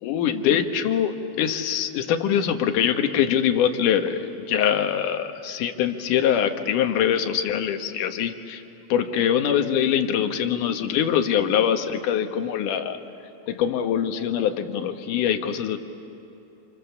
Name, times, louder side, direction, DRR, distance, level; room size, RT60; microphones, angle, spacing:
voice 1, 0.0-8.6 8.9-13.0 13.5-15.8, left 9 dB, 65° left, 6 dB, 2.5 m, -23 dB
30.0 x 27.5 x 7.1 m, 2.9 s
omnidirectional pair, 4.3 m